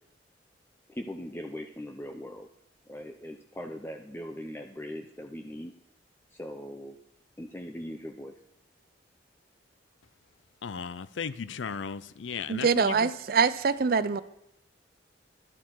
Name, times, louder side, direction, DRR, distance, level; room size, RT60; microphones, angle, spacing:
voice 1, 0.9-2.5 2.9-5.7 6.3-7.0 7.4-8.3, equal, 15° left, 0.6 m, -40 dB
voice 2, 10.6-13.1, left 6 dB, 85° left, 0.5 m, -36 dB
voice 3, 12.5-14.2, right 5 dB, 55° right, 0.5 m, -24 dB
12.0 x 11.5 x 4.6 m
head